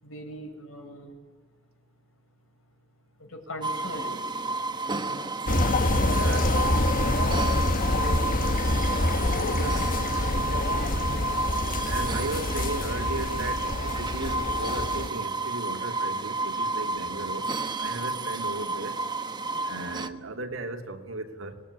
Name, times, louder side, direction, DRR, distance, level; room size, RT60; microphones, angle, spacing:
voice 1, 0.0-1.2 3.2-4.3 4.9-5.2 6.1-6.4 7.3-8.9 9.3-11.4 19.5-19.9, equal, 80° left, 3 dB, 7.1 m, -41 dB
sound 1, 3.6-20.1, right 3 dB, 20° right, 1.1 m, -31 dB
sound 2, 5.5-15.1, left 2 dB, 40° left, 1.2 m, -26 dB
voice 2, 6.1-6.5 9.6-9.8 11.8-19.0 19.6-21.6, right 2 dB, 85° right, 3 dB, 3.2 m, -36 dB
26.0 x 20.5 x 9.9 m, 1.3 s
head